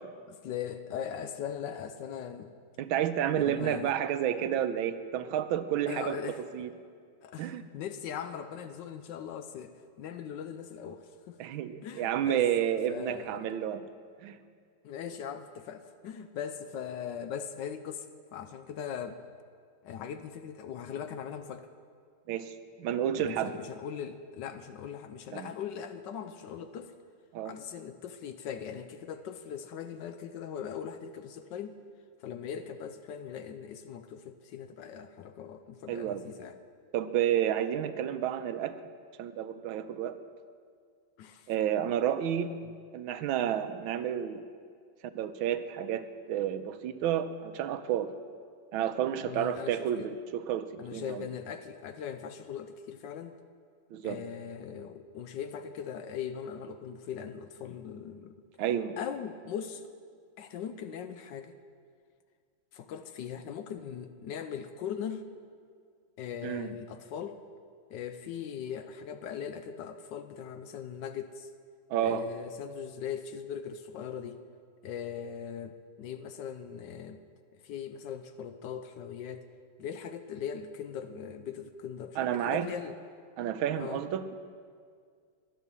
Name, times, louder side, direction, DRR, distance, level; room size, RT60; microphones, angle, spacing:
voice 1, 0.3-2.5 3.4-3.9 5.9-6.4 7.2-11.4 11.8-12.5 12.9-13.4 14.8-19.2 19.8-21.7 23.1-26.9 27.4-31.8 32.2-36.6 38.0-38.1 41.2-41.5 49.2-50.1 50.8-53.4 54.0-58.4 59.0-59.8 60.4-61.5 62.7-65.3 66.2-67.4 67.9-71.5 72.0-74.4 74.8-77.2 77.5-79.5 79.8-83.0 83.8-84.0, left 8 dB, 75° left, 9 dB, 1.1 m, -40 dB
voice 2, 2.8-6.2 6.5-6.7 7.4-7.6 11.4-13.8 14.2-14.4 22.3-23.5 25.3-25.5 27.3-27.5 35.9-36.2 36.9-38.8 39.2-40.2 41.5-42.6 42.9-44.4 45.1-48.1 48.7-51.3 53.9-54.2 58.6-59.0 66.4-66.7 71.9-72.3 82.2-82.7 83.4-84.4, right 10 dB, 90° right, 11 dB, 1.4 m, -30 dB
11.0 x 10.0 x 6.8 m, 2.1 s
omnidirectional pair, 2.2 m